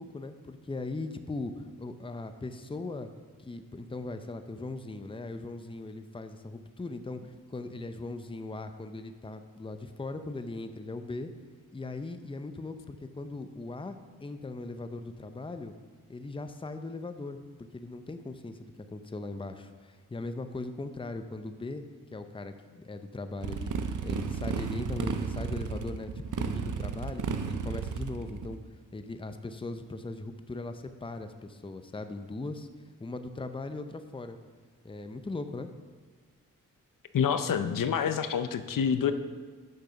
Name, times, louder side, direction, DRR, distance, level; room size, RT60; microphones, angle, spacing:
voice 1, 0.0-3.1 3.4-11.3 11.7-15.7 16.1-17.4 17.7-21.8 22.1-23.7 24.0-26.1 26.4-32.7 33.0-34.4 34.8-35.7, left 2 dB, 15° left, 9 dB, 0.6 m, -39 dB
Motorcycle, 23.4-28.5, right 5 dB, 65° right, 0.7 m, -33 dB
voice 2, 37.1-39.1, left 7 dB, 70° left, 10 dB, 0.6 m, -27 dB
6.6 x 6.2 x 5.7 m, 1.4 s
cardioid pair, 45°, 34 cm